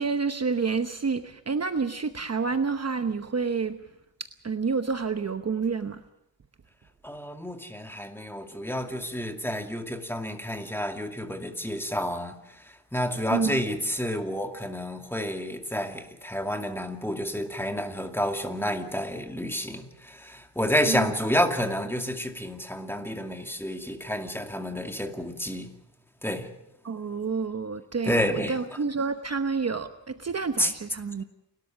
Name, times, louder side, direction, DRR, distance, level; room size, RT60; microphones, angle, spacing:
voice 1, 0.0-3.8 4.2-6.0 13.3-13.6 20.9-21.1 26.8-31.2, right 5 dB, 35° right, 1.0 m, -29 dB
voice 2, 7.0-25.7 26.2-26.5 28.0-28.8 30.6-30.7, equal, 5° left, 2.3 m, -30 dB
29.0 x 13.0 x 7.4 m
cardioid pair, 95°, 44 cm